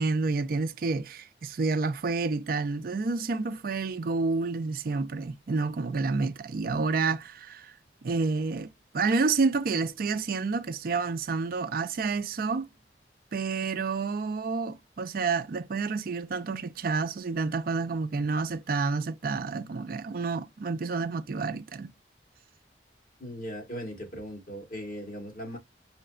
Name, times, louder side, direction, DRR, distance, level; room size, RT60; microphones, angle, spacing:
voice 1, 0.0-7.7 8.0-8.7 8.9-12.7 13.3-21.9, right 4 dB, 55° right, 0.4 m, -29 dB
voice 2, 23.2-25.6, equal, 50° left, 1.8 m, -38 dB
5.6 x 2.1 x 2.3 m
head